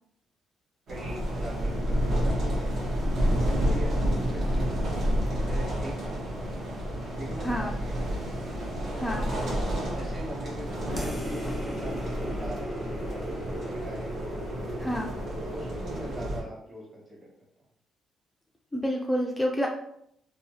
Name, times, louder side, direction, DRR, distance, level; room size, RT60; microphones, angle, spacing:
voice 1, 0.9-6.7 7.1-8.2 9.7-12.7 13.6-14.2 15.5-17.3, right 1 dB, 35° right, -4 dB, 1.4 m, -42 dB
sound 1, 0.9-16.4, equal, 65° right, 0.9 m, -30 dB
voice 2, 9.0-9.3 14.8-15.1 18.7-19.7, equal, 10° left, 0 dB, 0.3 m, -28 dB
sound 2, 11.0-15.8, left 1 dB, 10° right, 0.7 m, -40 dB
2.7 x 2.2 x 2.7 m, 0.72 s
cardioid pair, 90°, 0 cm